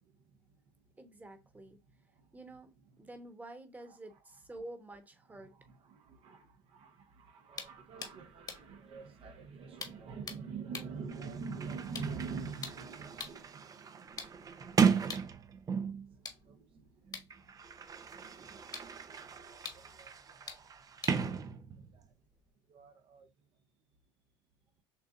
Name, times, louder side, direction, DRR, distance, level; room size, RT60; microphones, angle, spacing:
voice 1, 1.0-1.8 2.3-5.5 21.9-22.0, right 1 dB, 15° right, 1.2 m, -49 dB
voice 2, 5.9-15.2 15.7-17.1 17.9-18.0 18.7-18.8 19.0-20.3 21.8-22.1 22.7-23.3, right 5 dB, 50° right, 0.9 m, -46 dB
sound 1, 7.5-13.5 14.0-22.5, left 5 dB, 35° left, 1.4 m, -49 dB
Sliding door, 10.8-10.9 11.1-16.1 17.1-22.0, right 6 dB, 30° right, 0.6 m, -35 dB
6.8 x 2.3 x 2.4 m
supercardioid pair, 85°, 12 cm